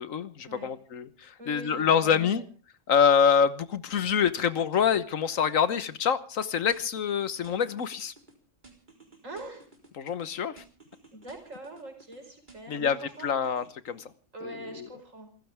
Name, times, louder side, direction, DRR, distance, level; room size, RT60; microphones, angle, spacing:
voice 1, 0.0-2.4 2.9-8.1 10.0-10.6 12.7-13.0 13.2-14.0 14.4-14.9, left 7 dB, 80° left, 13 dB, 1.6 m, -26 dB
voice 2, 1.4-2.5 9.2-9.7 11.1-13.6 14.3-15.3, right 1 dB, 75° right, 5 dB, 5.4 m, -43 dB
sound 1, 6.7-8.3 8.6-10.3 10.6-12.2 12.5-14.1, right 3 dB, 35° right, 4.2 m, -55 dB
28.0 x 14.5 x 3.5 m, 0.36 s
omnidirectional pair, 1.4 m